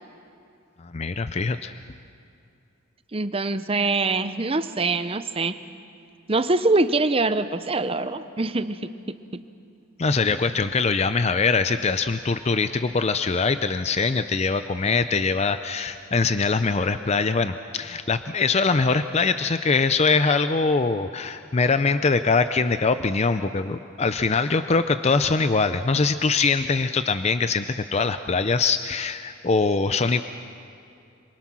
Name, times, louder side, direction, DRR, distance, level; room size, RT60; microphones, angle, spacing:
voice 1, 0.8-1.7 10.0-27.7 27.9-30.2, left 4 dB, 30° left, 10 dB, 0.5 m, -23 dB
voice 2, 3.1-5.6 6.3-8.9 9.3-9.4, right 3 dB, 30° right, 12 dB, 0.7 m, -24 dB
27.0 x 24.0 x 6.2 m, 2.5 s
head